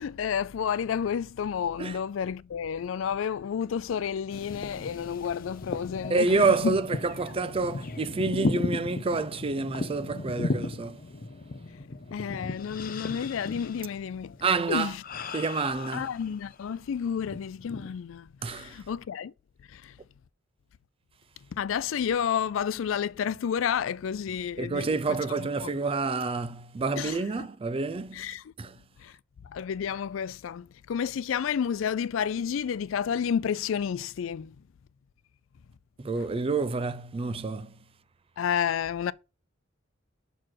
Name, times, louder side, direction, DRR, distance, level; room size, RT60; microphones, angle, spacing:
voice 1, 0.0-6.7 12.1-14.4 14.7-15.0 15.9-19.3 19.7-19.9 21.5-25.7 27.0-27.5 28.1-28.5 29.0-29.1 29.4-34.5 38.4-39.1, left 7 dB, 80° left, 0.4 m, -31 dB
sound 1, 4.3-16.7 17.1-17.9, left 2 dB, 45° left, 0.7 m, -36 dB
voice 2, 6.1-11.0 14.4-14.9 15.3-16.1 18.4-18.8 24.6-28.8 36.0-37.8, right 4 dB, 30° right, 0.4 m, -28 dB
6.1 x 4.7 x 6.0 m
head